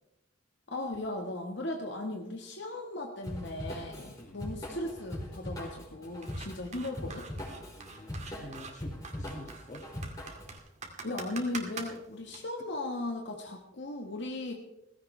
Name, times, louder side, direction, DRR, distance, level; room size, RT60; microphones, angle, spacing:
voice 1, 0.7-7.3 11.0-14.5, left 2 dB, 60° left, 2 dB, 1.6 m, -37 dB
Drum kit / Drum, 3.2-10.5, left 1 dB, 20° left, 4.7 m, -41 dB
voice 2, 4.2-4.5 7.8-9.8, left 1 dB, 40° left, 3 dB, 2.1 m, -48 dB
sound 1, 6.2-12.4, right 4 dB, 35° right, 2.2 m, -44 dB
17.0 x 16.0 x 3.4 m, 0.84 s
head